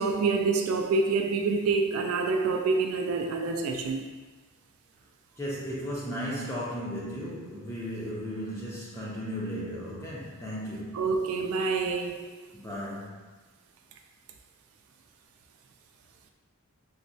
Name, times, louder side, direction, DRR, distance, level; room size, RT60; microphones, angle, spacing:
voice 1, 0.0-4.1 10.9-12.4, right 4 dB, 75° right, 4 dB, 0.3 m, -27 dB
voice 2, 5.4-11.1 12.5-13.3, equal, 15° left, -6 dB, 0.4 m, -35 dB
4.3 x 2.0 x 2.6 m, 1.2 s
head